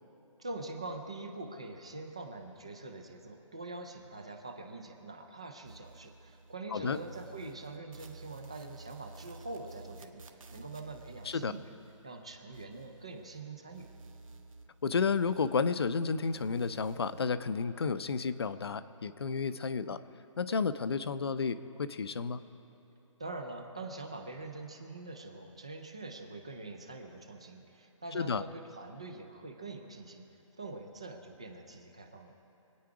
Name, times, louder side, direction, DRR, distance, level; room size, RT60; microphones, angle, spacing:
voice 1, 0.4-10.2 10.5-11.8 12.0-13.9 23.2-30.2 30.6-32.3, right 2 dB, 10° right, 5 dB, 0.4 m, -44 dB
sound 1, 5.6-6.5 6.8-13.4 13.7-16.0 16.2-17.2, right 3 dB, 85° right, 1.6 m, -52 dB
voice 2, 14.8-20.0 20.4-22.4 28.1-28.4, left 5 dB, 50° left, 13 dB, 0.6 m, -31 dB
25.5 x 9.6 x 4.8 m, 2.9 s
hypercardioid pair, 175°, 17 cm